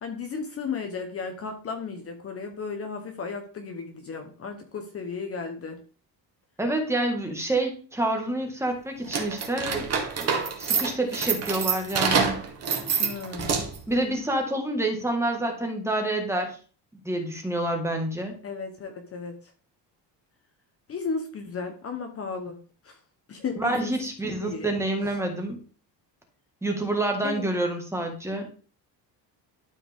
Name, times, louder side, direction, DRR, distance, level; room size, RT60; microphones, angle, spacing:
voice 1, 0.0-5.8 13.0-13.6 18.4-19.4 20.9-22.6 22.8-23.0 23.3-24.0 24.4-24.7 27.2-27.5, left 5 dB, 35° left, 5 dB, 1.1 m, -34 dB
voice 2, 6.6-10.3 10.6-12.4 13.9-16.6 17.0-18.3 23.6-25.6 26.6-28.5, right 1 dB, 5° right, 2 dB, 1.7 m, -28 dB
sound 1, 9.0-13.9, right 6 dB, 35° right, 1.7 m, -26 dB
12.0 x 4.9 x 3.6 m, 0.39 s
cardioid pair, 150°, 41 cm